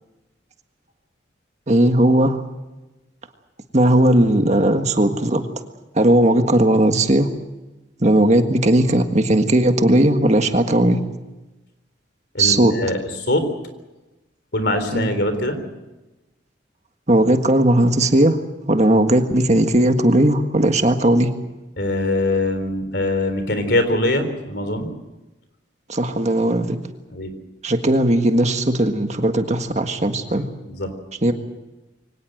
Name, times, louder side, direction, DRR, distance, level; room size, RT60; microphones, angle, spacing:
voice 1, 1.7-2.4 3.7-5.4 5.9-7.3 8.0-11.0 12.4-12.7 14.9-15.1 17.1-18.4 18.7-21.3 25.9-26.8 27.6-30.5 31.2-31.3, right 1 dB, 35° right, 6 dB, 1.6 m, -17 dB
voice 2, 12.3-13.5 14.5-15.6 21.8-24.9 27.1-27.3 30.3-30.9, left 1 dB, 60° left, 9 dB, 3.9 m, -22 dB
24.0 x 18.5 x 7.9 m, 1.1 s
head